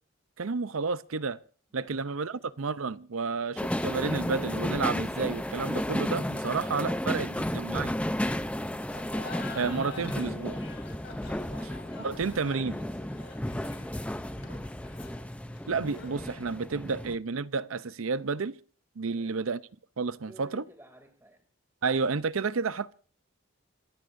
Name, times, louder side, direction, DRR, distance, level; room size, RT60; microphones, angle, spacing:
voice 1, 0.4-1.4 1.7-7.9 9.5-10.6 12.0-12.8 15.7-18.6 19.0-19.6 20.0-20.6 21.8-22.9, right 4 dB, 85° right, 0.6 m, -31 dB
voice 2, 2.2-2.6 19.1-19.4 20.3-21.4, right 1 dB, 10° right, 2.7 m, -56 dB
sound 1, 3.6-17.2, left 1 dB, 5° left, 0.6 m, -33 dB
Laughter, 8.8-16.3, left 3 dB, 55° left, 3.3 m, -47 dB
25.5 x 15.5 x 2.6 m
head